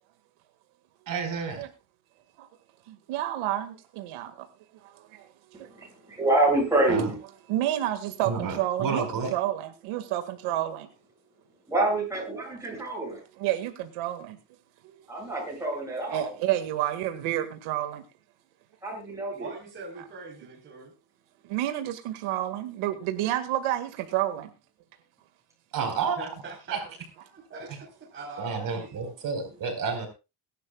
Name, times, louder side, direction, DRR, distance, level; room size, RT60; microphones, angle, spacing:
voice 1, 1.1-1.6 6.9-7.1 8.2-9.3 25.7-26.2 26.7-26.8 28.4-30.1, right 5 dB, 45° right, 4.7 m, -30 dB
voice 2, 2.9-4.5 4.7-5.9 7.5-9.1 9.3-10.9 13.4-14.4 14.8-15.0 16.1-18.0 21.4-24.5, right 13 dB, 90° right, 2.0 m, -30 dB
voice 3, 5.5-7.2 11.7-13.2 15.1-16.3 18.8-19.5 25.8-25.9, right 2 dB, 5° right, 7.9 m, -27 dB
voice 4, 19.4-20.9 25.8-26.9 27.2-29.1, right 3 dB, 25° right, 4.1 m, -42 dB
22.0 x 11.5 x 2.3 m
cardioid pair, 170°, 48 cm